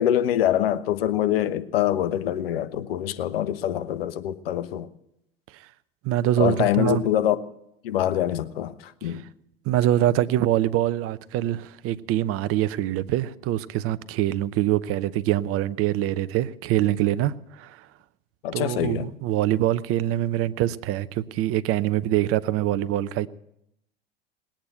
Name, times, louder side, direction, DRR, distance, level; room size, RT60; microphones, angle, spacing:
voice 1, 0.0-4.9 6.4-7.4 7.8-9.2 18.4-19.1, left 11 dB, 75° left, 1.0 m, -24 dB
voice 2, 6.0-7.0 9.0-9.2 9.6-17.9 18.5-23.3, right 13 dB, 50° right, 0.8 m, -24 dB
20.0 x 8.9 x 7.8 m
hypercardioid pair, 80°, 29 cm